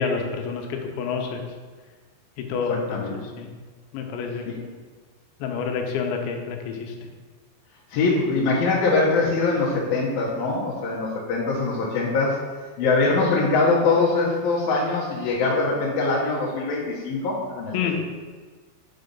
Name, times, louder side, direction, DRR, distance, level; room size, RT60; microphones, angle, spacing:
voice 1, 0.0-1.4 2.4-3.5 3.9-4.4 5.4-6.9 17.7-18.0, left 5 dB, 90° left, 3 dB, 3.3 m, -28 dB
voice 2, 2.7-3.2 4.5-4.6 7.9-12.4 12.8-18.0, left 3 dB, 65° left, -7 dB, 2.6 m, -23 dB
6.7 x 5.7 x 5.3 m, 1.4 s
omnidirectional pair, 5.0 m